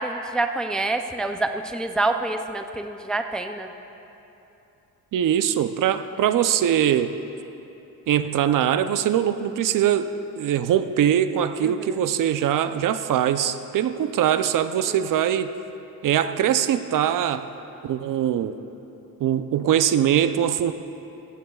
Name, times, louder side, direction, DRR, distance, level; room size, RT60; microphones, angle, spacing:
voice 1, 0.0-3.7 11.6-12.0 14.9-15.1, right 2 dB, ahead, 6 dB, 0.3 m, -27 dB
voice 2, 5.1-7.1 8.1-10.1 10.4-15.5 16.0-17.5 17.8-18.5 19.2-20.7, right 10 dB, 60° right, 11 dB, 0.5 m, -22 dB
15.5 x 15.5 x 2.3 m, 2.9 s
cardioid pair, 130°, 36 cm